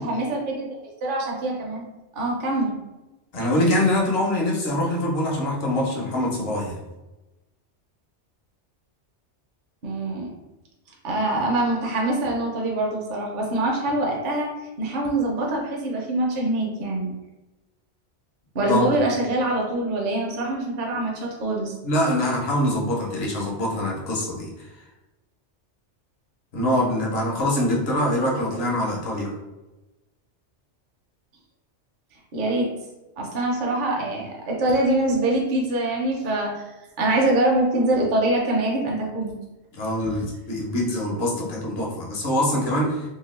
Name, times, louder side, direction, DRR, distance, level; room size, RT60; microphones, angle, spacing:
voice 1, 0.0-1.8 2.1-2.7 9.8-10.3 11.0-14.5 14.8-17.1 18.5-21.7 32.3-32.7 33.2-36.6 37.0-39.3 40.0-40.3, right 1 dB, 50° right, -2 dB, 0.7 m, -24 dB
voice 2, 3.3-6.8 18.6-18.9 21.8-24.7 26.5-29.3 39.7-43.0, left 1 dB, 60° left, -2 dB, 1.0 m, -24 dB
2.8 x 2.3 x 3.1 m, 1.0 s
omnidirectional pair, 1.2 m